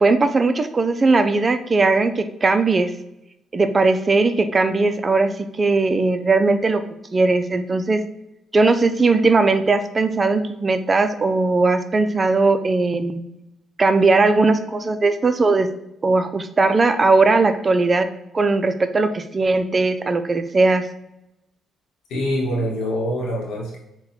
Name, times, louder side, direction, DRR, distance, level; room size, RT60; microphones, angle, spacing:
voice 1, 0.0-2.9 3.5-6.8 7.1-8.0 8.5-13.3 13.8-15.7 16.0-18.1 18.3-20.9, right 3 dB, 30° right, 10 dB, 0.4 m, -18 dB
voice 2, 22.1-23.8, equal, 90° left, -2 dB, 0.9 m, -24 dB
4.1 x 2.2 x 4.0 m, 0.87 s
cardioid pair, 90°, 0 cm